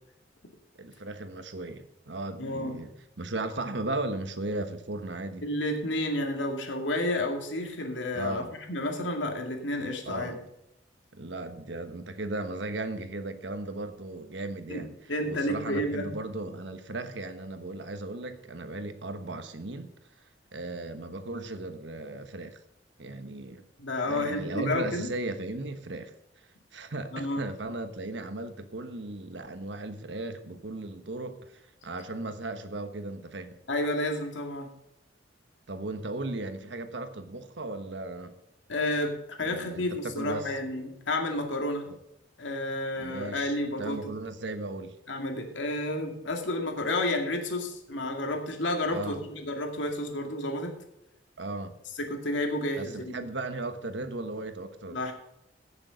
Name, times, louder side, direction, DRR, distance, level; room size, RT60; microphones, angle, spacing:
voice 1, 0.8-5.4 8.1-8.5 10.0-10.4 11.1-14.9 15.2-19.9 20.5-22.6 23.0-23.6 24.0-26.1 26.7-33.6 35.7-38.3 39.4-40.5 43.0-45.0 48.9-49.2 51.4-51.8 52.8-55.0, right 2 dB, 70° right, 9 dB, 1.3 m, -36 dB
voice 2, 2.4-2.8 5.4-10.4 14.7-14.8 15.1-16.1 23.8-25.1 27.1-27.4 33.7-34.7 38.7-41.8 42.4-44.1 45.1-50.7 52.0-53.3 54.9-55.1, left 1 dB, 90° left, 3 dB, 2.3 m, -31 dB
16.0 x 6.9 x 5.1 m, 0.84 s
head